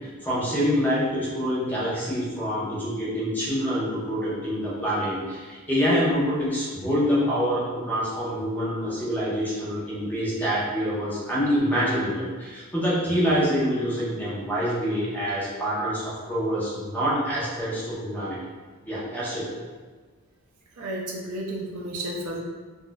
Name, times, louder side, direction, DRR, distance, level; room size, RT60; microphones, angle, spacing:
voice 1, 0.2-18.4 18.8-19.5, equal, 10° left, -8 dB, 0.7 m, -26 dB
voice 2, 20.8-22.4, right 1 dB, 70° right, -1 dB, 0.5 m, -32 dB
4.0 x 2.4 x 2.2 m, 1.4 s
head